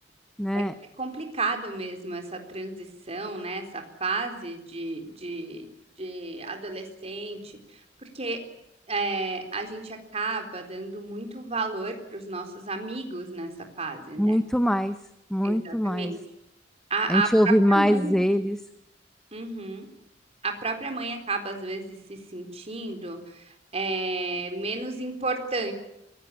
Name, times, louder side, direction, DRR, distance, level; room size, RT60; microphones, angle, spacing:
voice 1, 0.4-0.7 14.2-14.9 15.3-16.1 17.1-18.6, equal, 5° left, 10 dB, 0.8 m, -22 dB
voice 2, 1.0-5.6 6.0-8.4 8.9-13.5 13.8-14.4 15.4-16.2 16.9-17.3 17.7-18.2 19.3-19.9 20.4-25.7, right 3 dB, 35° right, 5 dB, 3.9 m, -32 dB
24.5 x 18.0 x 9.9 m, 0.84 s
head